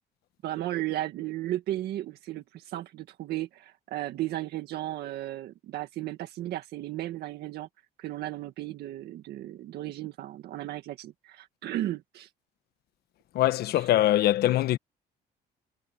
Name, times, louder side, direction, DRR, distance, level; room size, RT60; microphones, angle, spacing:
voice 1, 0.4-7.7 8.0-12.3 13.7-13.9, right 14 dB, 70° right, 1.8 m, -35 dB
voice 2, 13.3-14.8, left 14 dB, 70° left, 1.2 m, -23 dB
cardioid pair, 110°, 17 cm